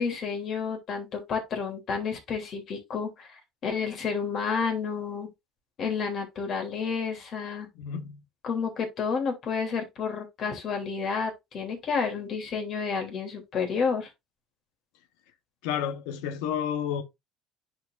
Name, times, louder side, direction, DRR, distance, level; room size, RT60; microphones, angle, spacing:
voice 1, 0.0-3.3 3.6-5.3 5.8-7.7 8.4-14.1, left 5 dB, 45° left, 3.0 m, -30 dB
voice 2, 7.8-8.2 15.6-17.0, left 9 dB, 90° left, 1.1 m, -31 dB
10.5 x 4.5 x 2.6 m
cardioid pair, 130°, 0 cm